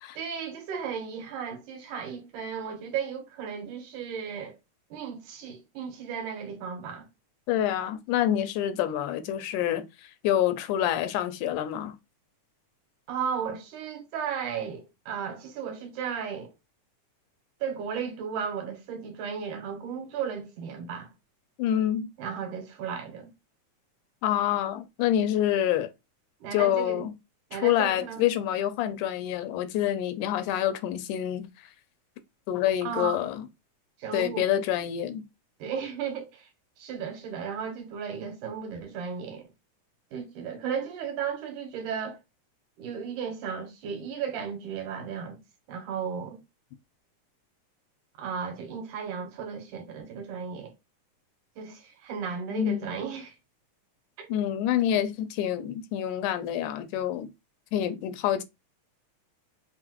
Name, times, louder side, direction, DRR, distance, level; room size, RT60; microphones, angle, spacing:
voice 1, 0.2-4.6 4.9-7.1 13.1-16.5 17.6-21.1 22.2-23.3 26.4-27.1 27.5-28.2 32.8-33.3 34.0-34.4 35.6-36.4 36.8-39.4 40.1-42.2 42.8-45.4 45.7-46.4 48.2-50.7 51.6-53.3 54.2-54.3, right 7 dB, 90° right, 2.6 m, -35 dB
voice 2, 7.5-12.0 21.6-22.1 24.2-25.9 26.5-27.1 27.5-31.7 32.5-33.5 34.1-35.2 52.5-52.9 54.3-57.3 57.7-58.4, left 11 dB, 85° left, 2.1 m, -27 dB
5.6 x 2.1 x 2.9 m
omnidirectional pair, 3.5 m